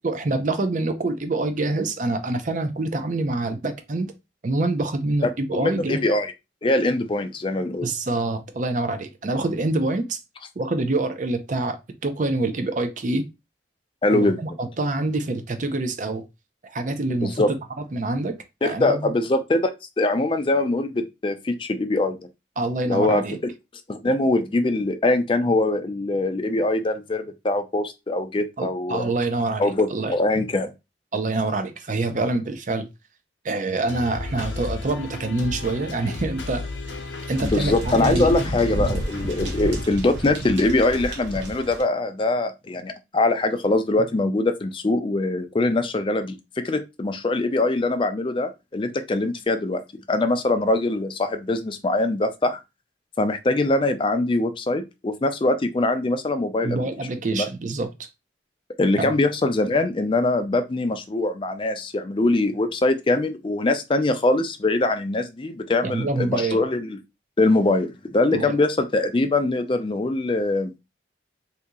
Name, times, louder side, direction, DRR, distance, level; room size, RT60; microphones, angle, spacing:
voice 1, 0.0-4.1 4.4-6.0 7.8-10.2 10.6-11.8 12.0-13.2 14.1-16.2 16.6-17.4 17.8-18.4 18.6-19.1 22.6-23.4 28.6-30.1 31.1-32.9 33.4-37.0 37.3-38.5 56.6-57.9 59.0-59.1 65.8-66.6 68.3-68.6, right 2 dB, 40° right, 0.5 m, -26 dB
voice 2, 5.6-6.3 6.6-7.9 14.0-14.4 17.2-17.5 18.6-19.7 20.0-22.2 22.9-23.2 23.9-29.1 29.6-30.7 37.4-46.4 46.6-49.8 50.1-52.6 53.2-56.8 57.3-57.5 58.8-67.0 67.4-70.8, left 2 dB, 25° left, 0.4 m, -23 dB
sound 1, 33.9-39.8, left 3 dB, 75° left, 0.7 m, -33 dB
sound 2, 37.3-41.8, right 1 dB, 75° right, 0.9 m, -31 dB
2.8 x 2.7 x 3.6 m
head